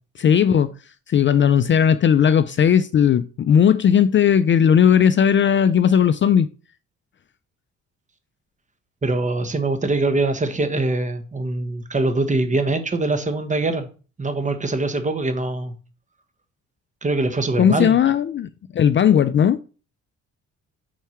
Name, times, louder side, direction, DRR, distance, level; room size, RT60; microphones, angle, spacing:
voice 1, 0.2-0.7 1.1-6.5 17.6-19.6, left 8 dB, 40° left, 0.4 m, -17 dB
voice 2, 9.0-13.9 14.2-15.7 17.0-18.0, right 2 dB, 25° right, 1.2 m, -23 dB
4.7 x 4.5 x 5.7 m
cardioid pair, 90°, 30 cm